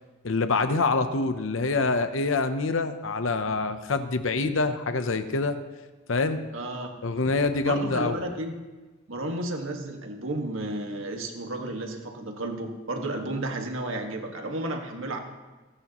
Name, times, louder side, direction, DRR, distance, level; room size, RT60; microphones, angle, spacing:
voice 1, 0.2-5.6 6.1-6.4 7.0-8.2, left 3 dB, 75° left, 9 dB, 0.8 m, -26 dB
voice 2, 6.5-7.2 7.6-8.6 9.1-15.2, right 1 dB, 80° right, 3 dB, 1.7 m, -32 dB
29.0 x 9.8 x 3.0 m, 1.2 s
head